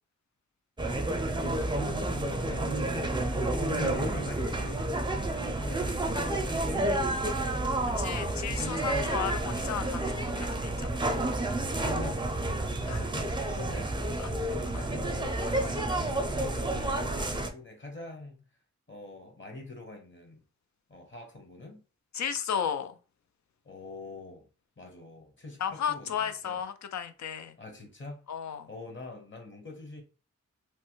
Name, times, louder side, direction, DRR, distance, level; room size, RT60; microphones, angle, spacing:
sound 1, 0.8-17.5, right 2 dB, 15° right, 0.5 m, -30 dB
voice 1, 1.4-3.1 3.6-7.6 11.8-12.2 12.8-13.9 14.7-18.4 18.9-20.4 20.9-21.8 23.6-24.5 24.8-26.6 27.6-28.2 28.7-30.0, left 2 dB, 40° left, 1.1 m, -44 dB
voice 2, 8.0-10.9 12.9-13.0 14.2-14.3 14.7-14.8 15.6-15.7 22.1-22.9 25.6-27.6 28.3-28.7, left 8 dB, 70° left, 0.5 m, -34 dB
3.2 x 2.1 x 3.0 m
cardioid pair, 60°, 29 cm